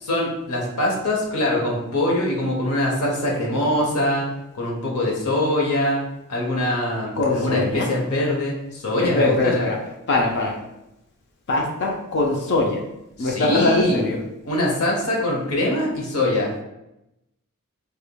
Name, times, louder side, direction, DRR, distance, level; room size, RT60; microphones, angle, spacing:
voice 1, 0.0-4.3 4.5-6.0 6.3-9.7 13.2-14.1 14.5-16.6, left 1 dB, 75° left, -2 dB, 0.9 m, -23 dB
voice 2, 7.2-7.9 9.0-9.8 10.1-10.6 11.5-12.8 13.2-14.2, left 2 dB, 50° left, 0 dB, 0.5 m, -21 dB
3.5 x 3.4 x 2.2 m, 0.89 s
head